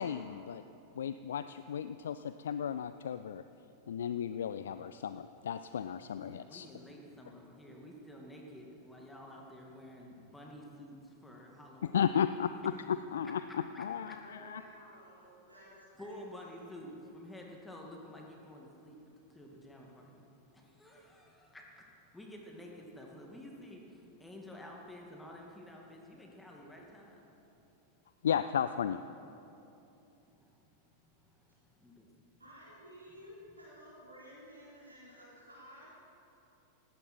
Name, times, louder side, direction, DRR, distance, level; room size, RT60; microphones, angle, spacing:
voice 1, 0.0-0.6 1.0-3.4 3.9-6.7 11.9-13.4 13.8-14.1 14.4-14.6 28.2-29.0, left 8 dB, 65° left, 12 dB, 0.4 m, -34 dB
voice 2, 0.5-1.0 6.0-12.2 13.0-13.3 13.7-14.2 16.0-28.1 30.2-32.3 33.1-33.3, left 1 dB, 5° left, -1 dB, 2.3 m, -51 dB
voice 3, 14.2-16.9 32.4-35.9, equal, 80° right, -9 dB, 4.5 m, -54 dB
18.5 x 16.5 x 4.5 m, 2.9 s
figure-of-eight pair, 90°, 0 cm